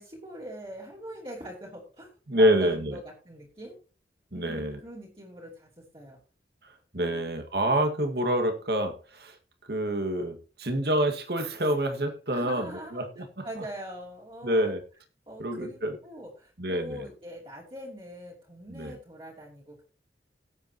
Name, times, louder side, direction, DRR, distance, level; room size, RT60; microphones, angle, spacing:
voice 1, 0.0-2.1 2.4-3.8 4.3-6.2 7.0-7.3 12.3-13.0 13.4-14.8 15.3-19.8, equal, 30° right, -5 dB, 2.9 m, -43 dB
voice 2, 2.3-3.0 4.3-4.8 6.9-9.3 9.7-13.4 14.4-14.8 15.4-16.0 16.6-17.0 18.7-19.0, right 1 dB, 65° right, 6 dB, 2.0 m, -27 dB
17.5 x 8.2 x 3.0 m, 0.35 s
head